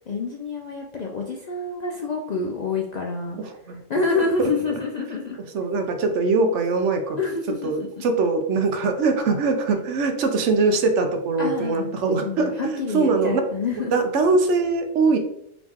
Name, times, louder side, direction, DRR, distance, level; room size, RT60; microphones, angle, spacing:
voice 1, 0.1-3.4 3.7-5.4 7.2-8.0 11.4-11.9 12.2-13.9, left 4 dB, 60° left, 0 dB, 0.4 m, -27 dB
voice 2, 3.4-3.8 4.4-4.5 5.5-7.2 7.6-13.4 13.9-15.2, right 3 dB, 75° right, 6 dB, 1.0 m, -22 dB
4.0 x 3.0 x 3.6 m, 0.76 s
omnidirectional pair, 1.2 m